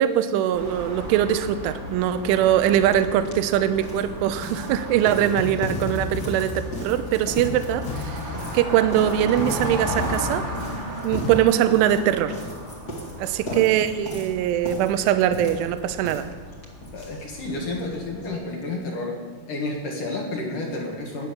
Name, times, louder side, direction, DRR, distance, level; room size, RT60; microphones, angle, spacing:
voice 1, 0.0-8.2 8.5-10.5 11.0-12.4 13.2-16.3, right 11 dB, 80° right, 10 dB, 3.2 m, -22 dB
sound 1, 0.5-18.3, right 1 dB, 40° right, 0.9 m, -36 dB
sound 2, 2.9-3.0 3.2-17.6 17.9-18.0 18.2-18.3 18.6-18.7, equal, 35° left, 1.6 m, -37 dB
sound 3, 4.9-11.4, left 5 dB, 90° left, 2.0 m, -34 dB
voice 2, 13.4-13.8 16.9-19.2 19.5-21.3, left 2 dB, 55° left, 0 dB, 2.7 m, -31 dB
19.0 x 9.7 x 6.9 m, 1.5 s
omnidirectional pair, 5.8 m